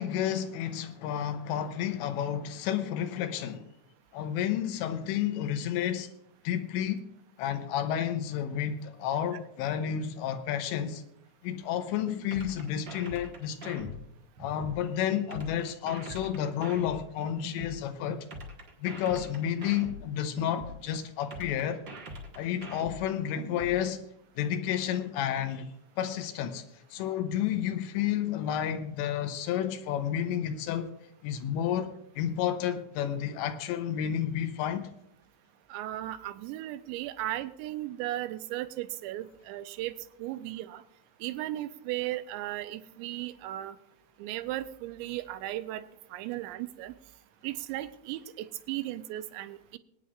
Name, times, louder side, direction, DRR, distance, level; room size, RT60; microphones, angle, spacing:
voice 1, 0.0-3.7 4.1-6.1 6.4-7.1 7.4-11.0 11.4-13.9 14.4-18.3 18.8-21.8 22.4-24.0 24.4-25.7 26.0-26.6 26.9-30.9 31.2-34.9, left 10 dB, 85° left, 3.1 m, -31 dB
sound 1, 12.3-14.8 15.3-17.8 18.3-20.8 21.3-23.8, equal, 70° right, 1.0 m, -42 dB
voice 2, 35.7-40.8 41.2-43.8 44.2-45.9 46.1-46.9 47.4-49.8, right 15 dB, 90° right, 2.9 m, -36 dB
24.5 x 9.4 x 2.5 m
omnidirectional pair, 5.0 m